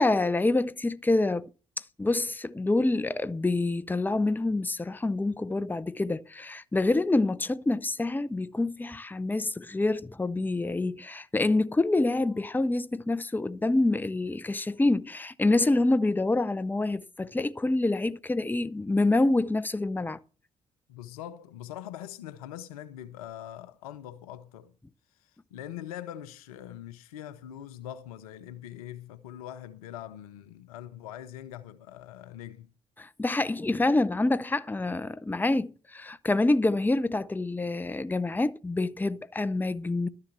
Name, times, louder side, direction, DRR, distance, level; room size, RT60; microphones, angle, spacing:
voice 1, 0.0-1.5 2.0-20.2 33.0-40.1, left 2 dB, 10° left, 0.7 m, -26 dB
voice 2, 20.9-24.7 25.2-32.7, left 11 dB, 75° left, 0.7 m, -42 dB
12.5 x 6.7 x 7.0 m
figure-of-eight pair, 40°, 19 cm